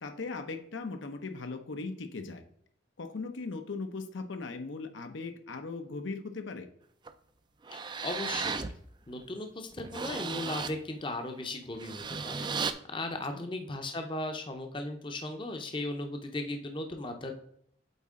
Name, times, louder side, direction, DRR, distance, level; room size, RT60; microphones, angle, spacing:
voice 1, 0.0-2.4 3.0-6.7 13.3-13.4, left 3 dB, 80° left, 7 dB, 0.7 m, -38 dB
sound 1, 7.1-7.2 7.6-8.7 9.2-9.3 9.7-10.8 11.7-12.7, right 5 dB, 25° right, 0.3 m, -35 dB
voice 2, 7.7-8.7 9.1-17.3, left 2 dB, 25° left, 5 dB, 0.6 m, -37 dB
8.1 x 4.2 x 3.6 m, 0.69 s
head